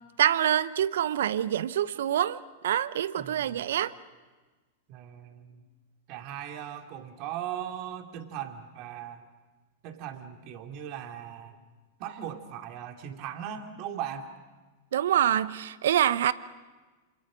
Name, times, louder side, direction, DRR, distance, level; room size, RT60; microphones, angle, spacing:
voice 1, 0.2-2.4 2.6-3.9 14.9-16.3, right 10 dB, 70° right, 0.8 m, -25 dB
voice 2, 3.2-3.6 4.9-5.6 6.1-9.3 9.8-11.6 12.0-14.3, right 10 dB, 45° right, 2.6 m, -38 dB
27.5 x 26.5 x 6.3 m
figure-of-eight pair, 95°, 0 cm